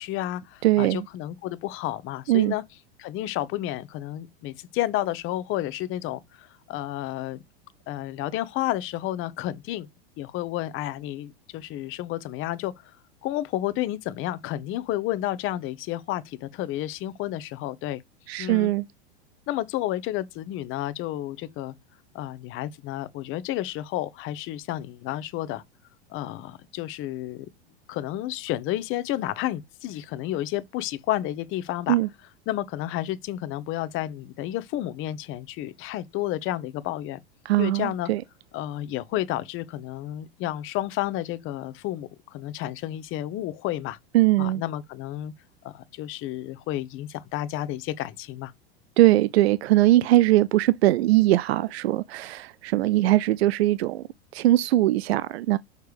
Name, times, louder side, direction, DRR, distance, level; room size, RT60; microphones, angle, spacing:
voice 1, 0.0-2.6 3.0-7.4 7.9-9.9 10.2-12.7 13.2-18.0 18.4-18.7 19.5-21.7 22.1-25.6 26.1-27.5 27.9-32.0 32.5-37.2 37.6-38.1 38.5-44.0 44.4-45.3 45.7-48.5, left 14 dB, 40° left, 0.8 m, -31 dB
voice 2, 0.6-1.0 2.3-2.5 18.3-18.8 31.9-32.1 37.5-38.2 44.1-44.6 49.0-54.0 54.3-55.6, right 16 dB, 75° right, 0.5 m, -21 dB
6.6 x 3.3 x 4.9 m
hypercardioid pair, 100°, 31 cm